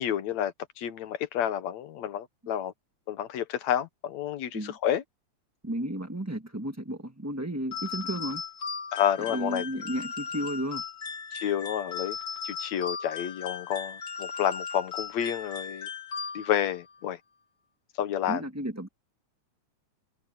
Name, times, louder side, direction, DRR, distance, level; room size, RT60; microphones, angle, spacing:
voice 1, 0.0-2.7 3.1-5.0 8.9-9.6 11.3-12.2 12.4-15.9 16.3-17.2 18.0-18.4, left 10 dB, 75° left, 2.3 m, -30 dB
voice 2, 5.6-8.4 9.2-10.8 18.3-18.9, right 1 dB, 15° right, 0.5 m, -33 dB
sound 1, 7.7-16.7, left 6 dB, 35° left, 2.2 m, -37 dB
omnidirectional pair, 3.3 m